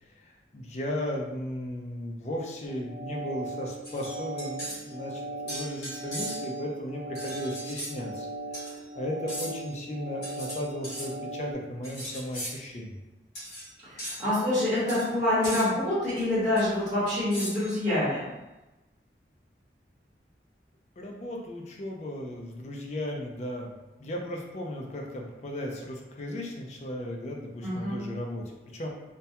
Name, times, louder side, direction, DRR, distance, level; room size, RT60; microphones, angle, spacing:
voice 1, 0.2-8.3 8.6-12.9 21.0-23.7 24.0-28.9, left 1 dB, 40° left, 0 dB, 0.4 m, -36 dB
sound 1, 2.7-11.5, right 2 dB, 35° right, 0.3 m, -39 dB
sound 2, 3.8-4.9 5.5-6.6 7.1-7.9 8.5-8.8 9.3-9.7 10.2-11.1 11.8-12.6 13.3-13.7 14.0-14.2 14.9-15.1 15.4-15.7 16.6-16.7 17.3-17.8, equal, 60° left, 0.9 m, -38 dB
voice 2, 13.8-18.3 27.6-28.0, left 1 dB, 5° right, -17 dB, 1.1 m, -26 dB
2.2 x 2.2 x 2.8 m, 1.1 s
head